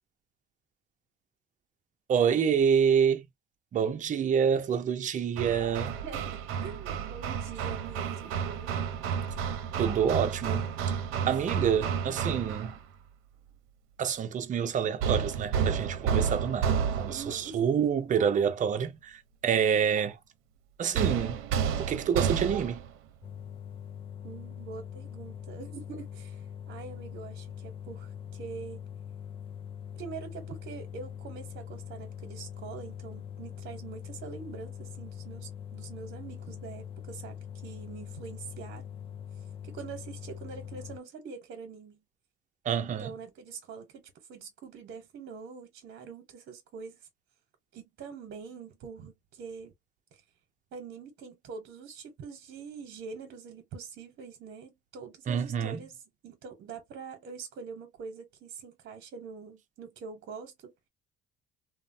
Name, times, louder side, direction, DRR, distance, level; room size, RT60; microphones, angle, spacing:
voice 1, 2.1-3.3 3.7-5.9 9.8-10.7 11.3-12.8 14.0-20.2 20.8-21.4 21.8-22.8 42.6-43.1 55.3-55.8, right 7 dB, 35° right, 0.5 m, -27 dB
Hammer, 5.4-12.8 15.0-17.4 20.9-22.9, right 7 dB, 80° right, 0.6 m, -31 dB
voice 2, 6.0-8.8 16.0-16.1 17.0-17.6 24.2-28.8 30.0-37.4 37.6-38.9 39.6-42.0 42.7-47.1 47.7-49.7 50.7-60.7, right 5 dB, 60° right, 0.9 m, -44 dB
sound 1, 23.2-41.0, left 8 dB, 25° left, 0.4 m, -43 dB
3.1 x 2.0 x 2.6 m
cardioid pair, 125°, 21 cm